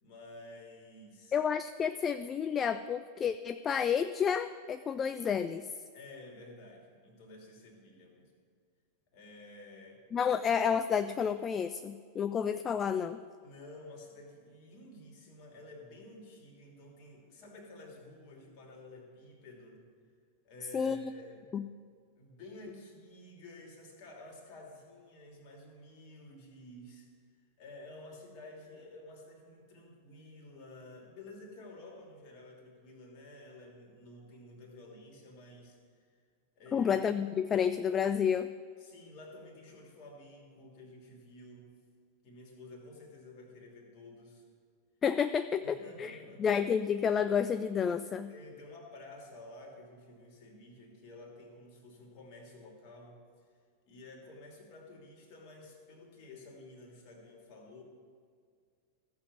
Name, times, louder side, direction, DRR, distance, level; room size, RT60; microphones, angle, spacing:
voice 1, 0.0-1.4 5.9-8.3 9.1-10.0 13.4-19.8 20.4-21.5 22.2-27.1 27.6-36.0 36.6-36.9 38.8-41.7 42.2-44.4 45.6-46.4 48.3-53.2 53.9-57.8, left 2 dB, 45° left, 0 dB, 2.8 m, -51 dB
voice 2, 1.3-5.7 10.1-13.2 20.7-21.1 21.5-21.7 36.7-38.5 45.0-48.3, left 7 dB, 25° left, 12 dB, 0.3 m, -30 dB
14.5 x 7.3 x 7.0 m, 2.1 s
figure-of-eight pair, 90°, 0 cm